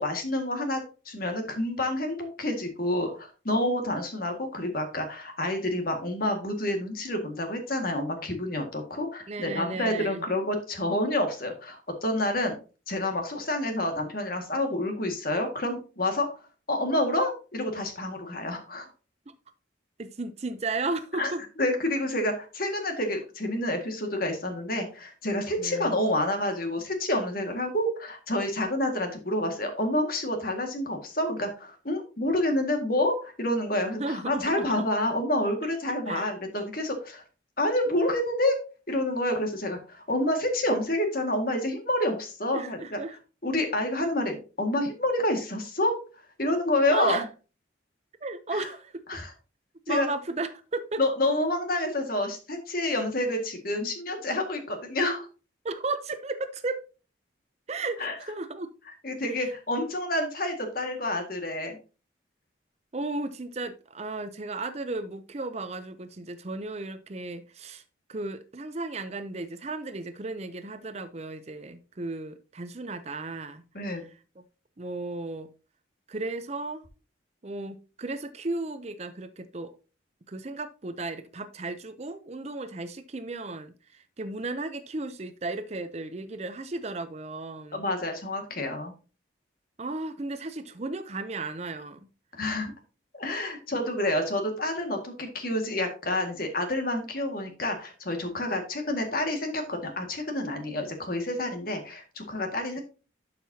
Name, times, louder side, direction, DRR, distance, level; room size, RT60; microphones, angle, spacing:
voice 1, 0.0-12.6 12.9-16.3 16.7-18.9 21.2-21.3 21.6-37.2 37.6-38.6 38.9-43.0 43.4-46.0 46.4-47.2 48.5-48.6 49.1-49.3 49.9-50.1 51.0-55.3 58.0-58.1 59.0-61.8 73.7-74.0 87.7-88.9 92.4-92.7 93.1-102.8, left 1 dB, 50° left, 4 dB, 1.9 m, -28 dB
voice 2, 9.3-10.2 19.3-19.4 20.0-21.4 25.6-26.0 34.0-34.9 36.1-36.3 42.5-43.2 46.9-47.2 48.2-49.0 49.9-51.0 55.6-56.8 57.7-58.7 59.3-59.5 62.9-67.8 68.1-73.6 74.0-74.4 74.8-75.5 76.1-76.9 77.4-79.7 80.3-87.9 89.8-92.1, right 3 dB, 35° right, 11 dB, 0.6 m, -35 dB
11.5 x 5.7 x 2.8 m, 0.34 s
head